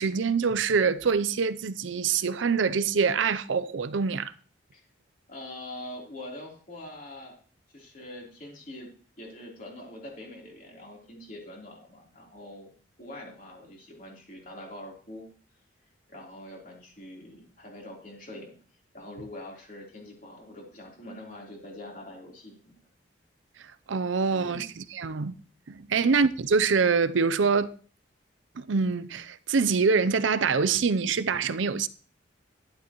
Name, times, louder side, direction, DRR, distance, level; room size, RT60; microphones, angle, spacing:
voice 1, 0.0-4.3 23.9-25.3 25.7-27.7 28.6-31.9, right 5 dB, 80° right, 0.6 m, -25 dB
voice 2, 5.3-7.3 7.7-8.9 9.2-12.7 13.0-15.3 16.1-18.6 18.9-22.6 24.3-24.7 25.9-26.1, left 1 dB, 45° left, 3.5 m, -44 dB
11.5 x 11.0 x 3.0 m
head